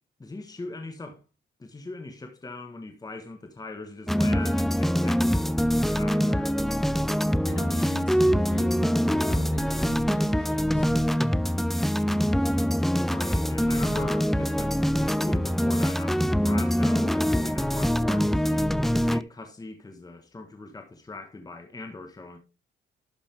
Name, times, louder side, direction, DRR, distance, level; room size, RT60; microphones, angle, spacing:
voice 1, 0.2-1.2 1.6-6.7 13.1-22.4, left 2 dB, 20° left, 1.3 m, -40 dB
sound 1, 4.1-19.2, equal, ahead, 0.4 m, -24 dB
voice 2, 7.4-10.9 13.9-14.1, left 3 dB, 65° left, 3.8 m, -42 dB
11.5 x 6.0 x 3.4 m
cardioid pair, 90°, 20 cm